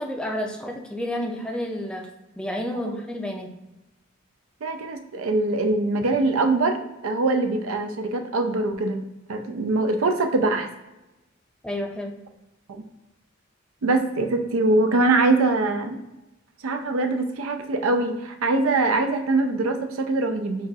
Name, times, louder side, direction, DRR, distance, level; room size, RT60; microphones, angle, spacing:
voice 1, 0.0-2.1 2.4-3.5 11.6-12.1, left 1 dB, 5° left, 2 dB, 0.4 m, -30 dB
voice 2, 4.6-6.8 7.0-9.0 9.3-10.7 12.7-12.8 13.8-16.0 16.6-20.7, right 2 dB, 90° right, 6 dB, 0.5 m, -23 dB
5.8 x 2.4 x 2.7 m, 0.97 s
head